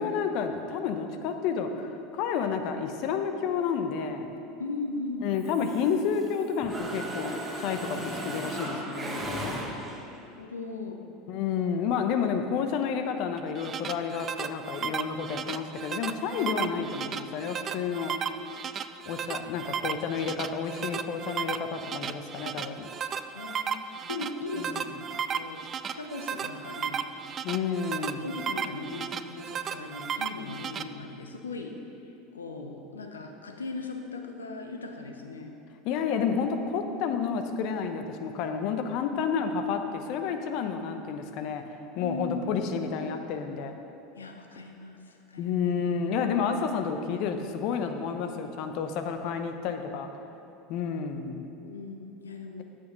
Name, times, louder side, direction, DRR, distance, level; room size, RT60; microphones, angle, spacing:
voice 1, 0.0-4.3 5.2-9.6 11.3-18.2 19.1-22.9 24.6-24.9 27.4-28.3 35.8-41.6 42.0-43.7 45.4-50.1 50.7-51.5, left 6 dB, 55° left, 7 dB, 0.7 m, -30 dB
voice 2, 4.6-5.4 10.2-11.0 23.3-27.0 28.2-31.8 32.3-35.5 42.0-42.4 44.2-45.5 51.6-52.6, left 3 dB, 85° left, 4 dB, 0.8 m, -38 dB
Mechanisms, 5.4-6.3 6.6-10.2, right 1 dB, 20° right, 1.4 m, -36 dB
sound 1, 13.4-30.8, right 7 dB, 35° right, 0.3 m, -35 dB
8.5 x 6.4 x 5.3 m, 2.7 s
hypercardioid pair, 80°, 0 cm